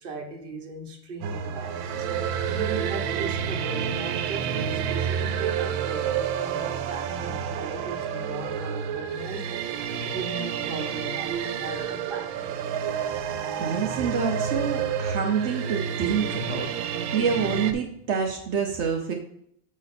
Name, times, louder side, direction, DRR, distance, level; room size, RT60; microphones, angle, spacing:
voice 1, 0.0-13.7, right 3 dB, 40° right, 3 dB, 0.9 m, -39 dB
sound 1, 1.2-17.7, right 7 dB, 90° right, 1.4 m, -29 dB
voice 2, 13.6-19.1, right 6 dB, 70° right, 1 dB, 0.6 m, -27 dB
7.7 x 5.2 x 4.1 m, 0.70 s
omnidirectional pair, 2.1 m